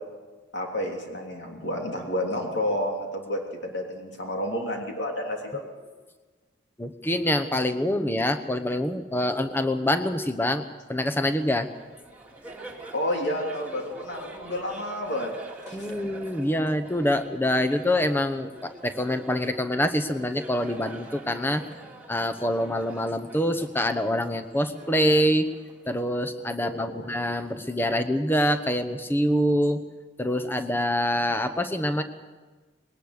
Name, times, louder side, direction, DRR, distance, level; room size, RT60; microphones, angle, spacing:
voice 1, 0.5-5.6 12.9-15.3 15.7-15.9 26.6-27.1, left 1 dB, 70° left, 1 dB, 3.2 m, -30 dB
voice 2, 6.8-10.6 10.9-11.7 15.7-21.6 22.1-25.5 25.9-29.8 30.2-32.0, left 1 dB, 10° left, 8 dB, 1.0 m, -25 dB
Laughter, 11.2-26.2, right 2 dB, 10° right, 2.4 m, -45 dB
21.0 x 19.0 x 6.7 m, 1.3 s
head